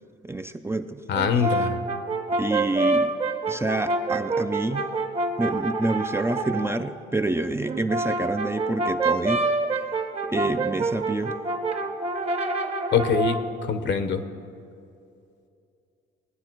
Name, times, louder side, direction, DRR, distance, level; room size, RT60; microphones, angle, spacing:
voice 1, 0.2-1.0 1.4-1.5 2.4-3.1 3.5-4.9 5.4-9.5 10.3-11.4, right 2 dB, 15° right, 8 dB, 0.5 m, -27 dB
voice 2, 1.1-1.8 12.9-13.4 13.6-14.2, left 6 dB, 65° left, 10 dB, 1.0 m, -23 dB
Brass instrument, 1.1-6.7 7.6-13.5, right 2 dB, 30° right, 1.0 m, -27 dB
20.0 x 9.5 x 4.6 m, 2.6 s
cardioid pair, 90°, 20 cm